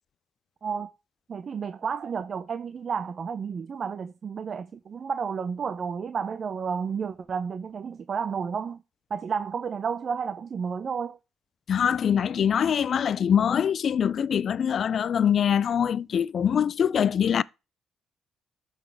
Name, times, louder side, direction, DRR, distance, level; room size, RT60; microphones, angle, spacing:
voice 1, 1.3-8.8 9.1-11.2, right 6 dB, 50° right, 0.5 m, -31 dB
voice 2, 11.7-17.4, left 8 dB, 55° left, 0.3 m, -23 dB
12.0 x 4.1 x 4.6 m
cardioid pair, 90°, 0 cm